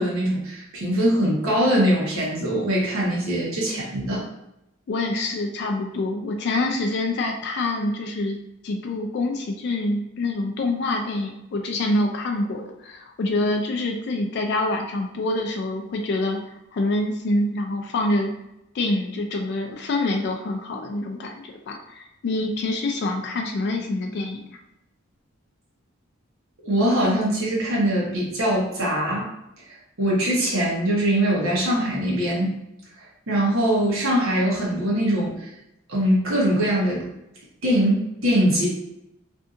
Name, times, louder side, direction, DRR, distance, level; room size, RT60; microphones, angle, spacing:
voice 1, 0.0-4.2 26.6-29.3 30.0-32.5 33.3-35.5 35.9-37.1 37.6-38.7, right 1 dB, 75° right, -5 dB, 0.9 m, -22 dB
voice 2, 4.9-8.4 8.6-16.4 16.7-18.3 18.7-24.5, left 2 dB, 50° left, 3 dB, 0.3 m, -26 dB
2.6 x 2.5 x 2.4 m, 0.85 s
head